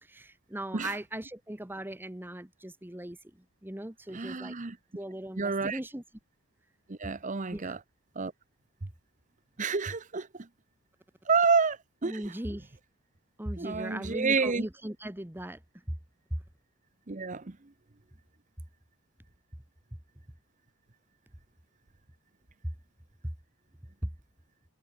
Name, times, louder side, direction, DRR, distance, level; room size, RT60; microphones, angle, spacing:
voice 1, 0.0-3.2 3.6-4.5 4.9-6.0 7.5-7.7 12.0-12.8 13.4-15.6 24.0-24.1, right 1 dB, 10° right, 1.2 m, -38 dB
voice 2, 4.1-4.8 5.4-5.8 6.9-7.8 8.2-8.3 8.8-8.9 9.6-10.5 11.3-12.3 13.6-14.7 17.1-17.7, right 4 dB, 35° right, 0.8 m, -29 dB
head